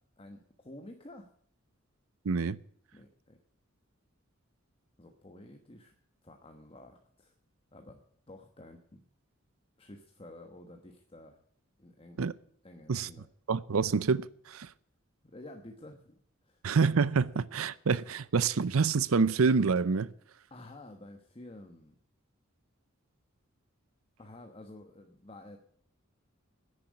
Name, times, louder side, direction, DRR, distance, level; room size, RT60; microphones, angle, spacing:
voice 1, 0.2-1.3 2.9-3.4 5.0-5.9 6.2-7.3 7.7-8.0 8.3-9.0 9.8-11.4 11.8-12.2 12.6-13.3 15.2-16.2 16.4-16.6 20.5-22.0 24.2-25.6, left 1 dB, 25° left, 1.2 m, -50 dB
voice 2, 2.3-2.6 12.2-12.3 12.9-13.1 13.5-14.7 16.6-20.1, right 5 dB, 90° right, 0.6 m, -27 dB
10.5 x 10.0 x 9.6 m
head